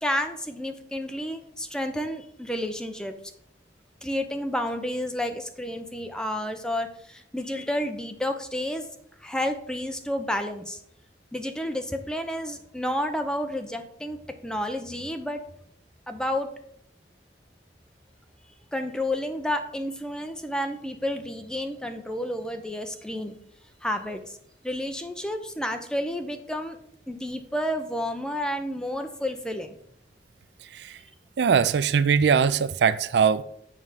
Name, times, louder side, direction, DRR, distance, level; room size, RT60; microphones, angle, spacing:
voice 1, 0.0-3.1 4.0-8.9 9.2-10.8 11.3-15.4 16.1-16.5 18.7-23.4 23.8-24.4 24.6-26.8 27.1-29.8, left 1 dB, 5° left, 0.7 m, -30 dB
voice 2, 31.4-33.4, right 6 dB, 70° right, 0.4 m, -21 dB
7.4 x 4.8 x 5.7 m
head